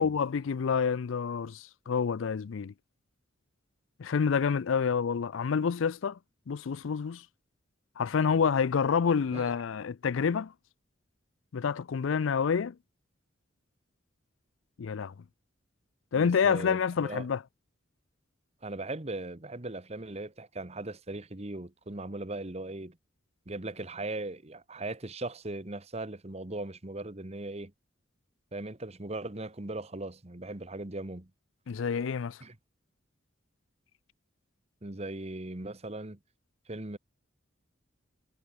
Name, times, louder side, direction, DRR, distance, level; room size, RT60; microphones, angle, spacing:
voice 1, 0.0-2.7 4.0-6.2 6.5-7.2 8.0-10.5 11.5-12.7 14.8-15.1 16.1-17.4 31.7-32.4, left 6 dB, 80° left, 0.4 m, -28 dB
voice 2, 16.1-17.3 18.6-23.0 23.5-27.7 28.5-31.3 32.4-32.6 34.8-36.2 36.7-37.0, right 2 dB, 35° right, 1.4 m, -39 dB
head